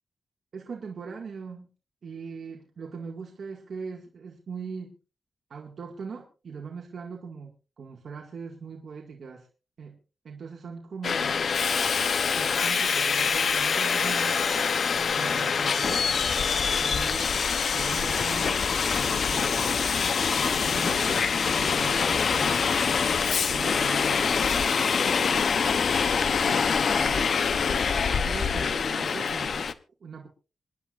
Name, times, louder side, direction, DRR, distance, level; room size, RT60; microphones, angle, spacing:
voice 1, 0.5-1.7 2.0-4.9 5.5-9.5 9.8-10.0 10.2-11.4 12.3-14.7 15.1-16.1 16.8-17.4 17.7-19.9 20.6-22.6 23.5-26.7 27.0-27.4 27.7-29.7 30.0-30.3, right 5 dB, 65° right, 0 dB, 2.2 m, -40 dB
Subway metro underground, 11.0-29.7, left 6 dB, 65° left, 0.9 m, -25 dB
27.0 x 10.5 x 2.6 m, 0.34 s
cardioid pair, 95°, 0 cm